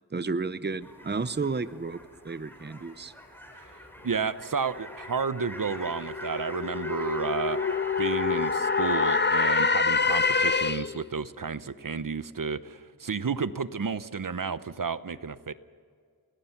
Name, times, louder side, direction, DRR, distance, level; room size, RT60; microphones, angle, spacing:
voice 1, 0.1-3.1, right 4 dB, 25° right, 13 dB, 0.8 m, -32 dB
sound 1, 0.8-10.6, equal, 5° left, 4.8 m, -42 dB
voice 2, 4.0-7.6 8.0-15.5, right 5 dB, 55° right, 14 dB, 0.9 m, -31 dB
sound 2, 4.9-11.1, left 4 dB, 30° left, 0.6 m, -26 dB
29.0 x 20.5 x 5.9 m, 2.1 s
wide cardioid pair, 70°, 38 cm